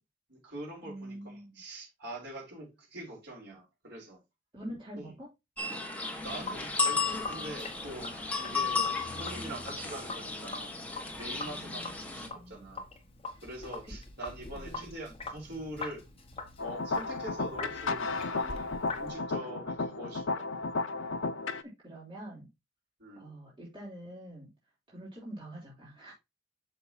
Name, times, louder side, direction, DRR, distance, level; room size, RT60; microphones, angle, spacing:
voice 1, 0.3-4.2 5.0-5.1 6.2-8.1 8.4-12.9 13.4-16.0 16.6-18.6 19.0-20.5 23.0-23.4, right 1 dB, 60° right, 4.9 m, -44 dB
voice 2, 0.8-1.6 4.5-5.3 8.6-8.7 11.4-12.2 14.5-14.9 21.6-22.5 23.2-24.5 24.9-26.1, right 1 dB, 25° right, 3.3 m, -45 dB
sound 1, 5.6-12.3, left 4 dB, 10° left, 1.5 m, -34 dB
Sink (filling or washing), 6.2-19.1, left 3 dB, 30° left, 1.8 m, -44 dB
sound 2, 16.6-21.6, left 3 dB, 80° left, 0.6 m, -33 dB
8.0 x 6.8 x 2.8 m
head